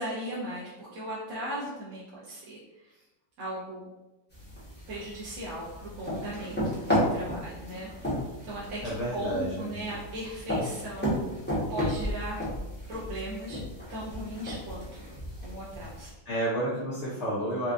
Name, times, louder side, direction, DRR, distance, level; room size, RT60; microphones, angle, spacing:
voice 1, 0.0-3.0 3.4-3.9 4.9-6.6 7.1-8.1 8.4-11.2 11.7-12.5 12.9-13.6 13.9-14.8 15.4-16.1, right 1 dB, 60° right, -7 dB, 0.9 m, -37 dB
sound 1, 4.3-16.1, equal, 10° left, 0.6 m, -33 dB
voice 2, 8.8-9.8 16.3-17.7, right 1 dB, 60° left, -7 dB, 0.7 m, -30 dB
4.3 x 2.4 x 2.5 m, 1.0 s
omnidirectional pair, 2.1 m